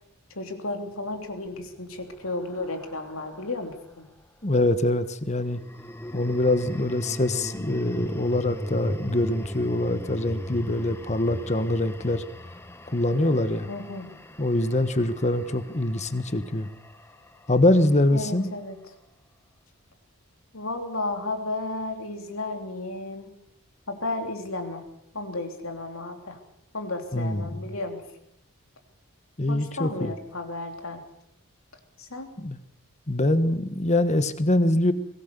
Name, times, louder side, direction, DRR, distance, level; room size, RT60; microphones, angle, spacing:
voice 1, 0.3-4.1 13.7-14.1 18.1-18.8 20.5-23.3 23.9-24.8 25.1-26.4 26.7-28.0 29.5-31.0 32.0-32.3, left 2 dB, 70° left, 5 dB, 3.3 m, -33 dB
sound 1, 1.3-3.8 5.4-17.7, left 1 dB, 10° left, 1.0 m, -38 dB
voice 2, 4.4-5.6 6.1-12.2 12.9-13.7 14.4-16.7 17.5-18.5 27.1-27.6 29.4-30.1 32.4-32.6 33.1-34.9, left 1 dB, 30° left, 12 dB, 1.3 m, -24 dB
22.5 x 17.5 x 6.9 m, 0.77 s
head